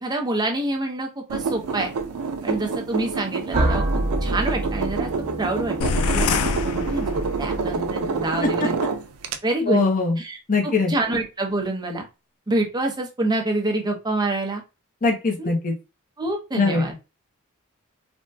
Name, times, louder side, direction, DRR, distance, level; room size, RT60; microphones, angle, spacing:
voice 1, 0.0-1.9 2.4-3.8 4.2-5.1 5.4-6.3 6.6-8.8 9.4-9.8 10.2-10.4 10.6-12.1 12.5-14.6 15.4-15.5 16.2-16.9, right 2 dB, 20° right, 2 dB, 0.7 m, -26 dB
sound 1, 1.3-9.4, right 4 dB, 80° right, 0.4 m, -28 dB
sound 2, 3.5-8.2, right 1 dB, 35° right, 1.3 m, -28 dB
sound 3, 5.8-7.7, left 5 dB, 75° left, 0.3 m, -25 dB
voice 2, 9.7-10.2 10.5-10.9 15.0-15.7 16.5-16.8, left 3 dB, 40° left, 2 dB, 0.7 m, -21 dB
3.4 x 2.1 x 2.6 m, 0.28 s
head